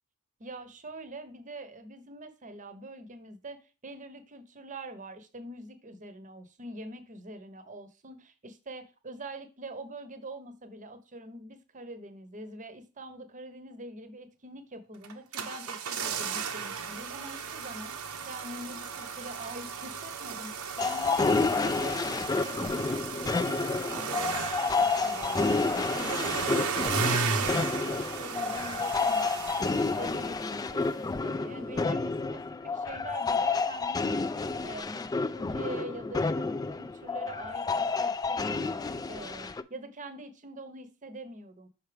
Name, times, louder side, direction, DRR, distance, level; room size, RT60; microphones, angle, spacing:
voice 1, 0.4-22.0 22.4-34.3 34.6-38.8 39.1-41.7, right 1 dB, 35° right, 10 dB, 0.8 m, -44 dB
sound 1, 15.0-30.5 30.8-30.9, right 5 dB, 90° right, 0.9 m, -35 dB
sound 2, 20.8-39.6, left 4 dB, 15° left, 0.3 m, -30 dB
5.9 x 5.5 x 3.3 m, 0.32 s
head